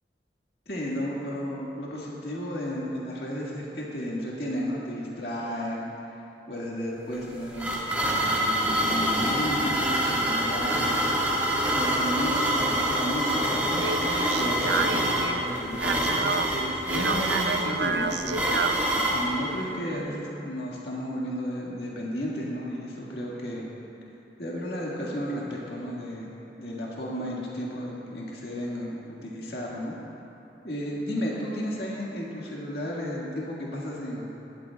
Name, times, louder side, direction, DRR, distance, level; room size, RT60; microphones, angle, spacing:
voice 1, 0.7-5.9 6.5-13.7 14.3-18.8 19.1-23.7 24.4-26.3 26.6-30.0 30.6-34.3, equal, 65° left, -5 dB, 1.8 m, -33 dB
sound 1, 7.1-19.3, right 1 dB, 10° right, 1.6 m, -26 dB
Speech, 13.6-18.9, right 4 dB, 75° right, 0.5 m, -30 dB
18.5 x 13.0 x 2.3 m, 2.9 s
head